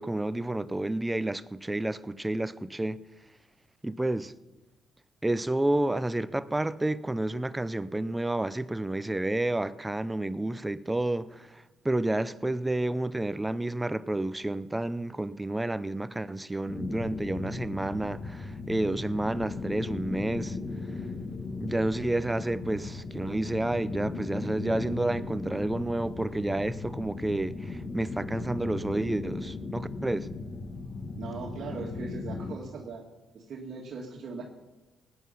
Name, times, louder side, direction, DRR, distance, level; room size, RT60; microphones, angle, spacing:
voice 1, 0.0-3.0 3.8-4.3 5.2-11.3 11.8-20.5 21.6-30.3, right 1 dB, 10° right, 0.6 m, -30 dB
sound 1, 16.7-32.5, left 3 dB, 45° left, 1.5 m, -37 dB
voice 2, 31.2-33.0 33.3-34.4, right 4 dB, 65° right, 1.9 m, -39 dB
18.0 x 9.7 x 5.7 m
cardioid pair, 90°, 0 cm